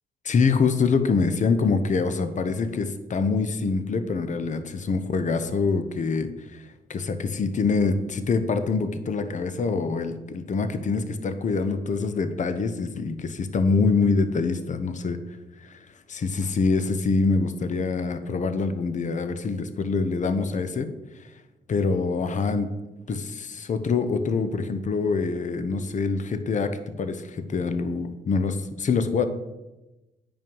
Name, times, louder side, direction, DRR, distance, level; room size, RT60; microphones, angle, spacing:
voice 1, 0.2-6.6 6.9-15.2 15.6-15.8 16.1-20.9 21.7-22.7 23.1-29.3, left 4 dB, 50° left, 10 dB, 0.9 m, -25 dB
9.0 x 5.6 x 5.4 m, 1.0 s
cardioid pair, 80°, 16 cm